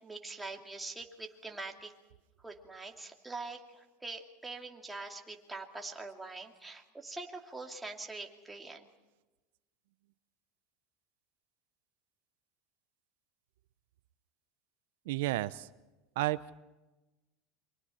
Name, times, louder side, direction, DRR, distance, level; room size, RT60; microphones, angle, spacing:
voice 1, 0.0-1.9 2.4-8.9, right 3 dB, 5° right, 1 dB, 2.5 m, -44 dB
voice 2, 15.1-15.7 16.2-16.6, right 17 dB, 80° right, 14 dB, 0.6 m, -32 dB
29.5 x 25.0 x 4.3 m, 1.1 s
supercardioid pair, 150°, 0 cm